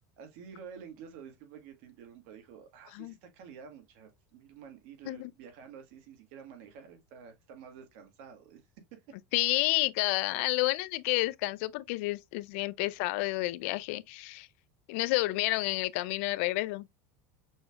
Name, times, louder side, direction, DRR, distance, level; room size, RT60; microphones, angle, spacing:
voice 1, 0.2-8.6 8.9-9.0, right 7 dB, 60° right, 1.5 m, -50 dB
voice 2, 9.3-14.5 14.9-16.9, left 21 dB, 65° left, 0.3 m, -30 dB
6.2 x 3.3 x 2.3 m
supercardioid pair, 155°, 8 cm